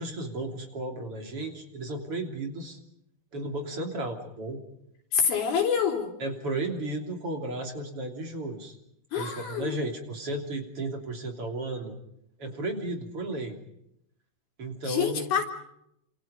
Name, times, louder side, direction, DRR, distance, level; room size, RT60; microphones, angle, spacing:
voice 1, 0.0-2.8 3.3-4.6 6.2-8.8 9.2-12.0 12.4-13.6 14.6-15.4, right 2 dB, 40° right, 3 dB, 3.9 m, -34 dB
voice 2, 5.1-6.1 9.1-9.8 14.9-15.4, left 7 dB, 85° left, 2 dB, 5.7 m, -26 dB
29.5 x 27.0 x 5.3 m, 0.78 s
omnidirectional pair, 4.2 m